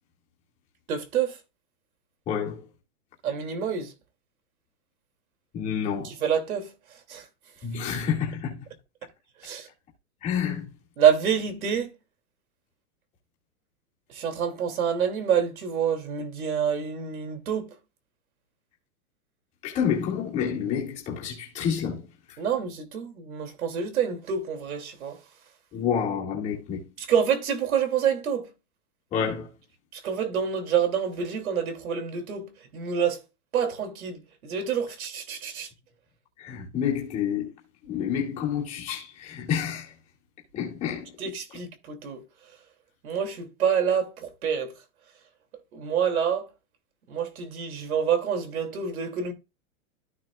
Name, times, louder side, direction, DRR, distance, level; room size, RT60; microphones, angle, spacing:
voice 1, 0.9-1.4 3.2-3.9 6.0-6.7 7.1-7.2 9.4-9.7 11.0-11.9 14.1-17.7 22.4-25.2 27.0-28.5 29.9-33.2 33.5-35.7 41.2-42.2 43.0-44.7 45.7-46.5 47.1-49.3, right 7 dB, 85° right, 2.9 m, -27 dB
voice 2, 2.3-2.7 5.5-6.1 7.6-8.6 10.2-10.7 19.6-22.1 25.7-26.8 29.1-29.5 36.4-37.5 37.8-39.9 40.5-41.3, left 8 dB, 15° left, 2.2 m, -29 dB
14.0 x 6.2 x 2.4 m
supercardioid pair, 180°, 42 cm